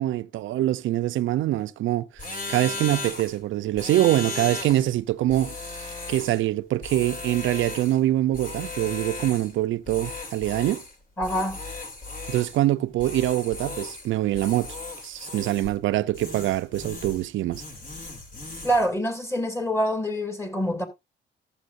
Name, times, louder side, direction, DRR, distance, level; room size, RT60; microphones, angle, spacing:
voice 1, 0.0-5.5 6.1-10.8 12.3-14.7 15.0-17.6, right 14 dB, 80° right, 0.6 m, -24 dB
sound 1, 2.2-3.4 3.7-4.9 5.3-6.4 6.8-8.0 8.3-9.5 9.9-10.9 11.2-12.6 13.0-14.1 14.3-15.8 16.1-17.3 17.5-18.8, left 3 dB, 45° left, 2.8 m, -36 dB
voice 2, 11.2-11.6 18.6-20.9, equal, 15° left, 2.6 m, -25 dB
14.5 x 7.1 x 2.6 m
cardioid pair, 90°, 20 cm